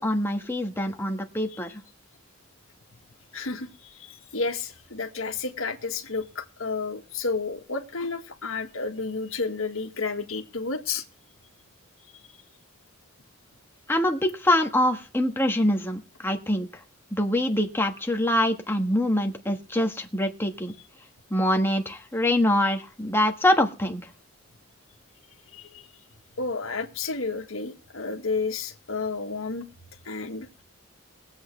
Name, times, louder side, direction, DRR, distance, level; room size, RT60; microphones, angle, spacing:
voice 1, 0.0-1.8 13.9-16.7 17.2-20.7 21.3-24.0, left 1 dB, 10° left, 1.4 m, -24 dB
voice 2, 3.3-11.0 12.1-12.2 25.5-25.9 26.4-29.7 30.1-30.5, left 4 dB, 80° left, 1.8 m, -31 dB
22.0 x 8.1 x 3.3 m
head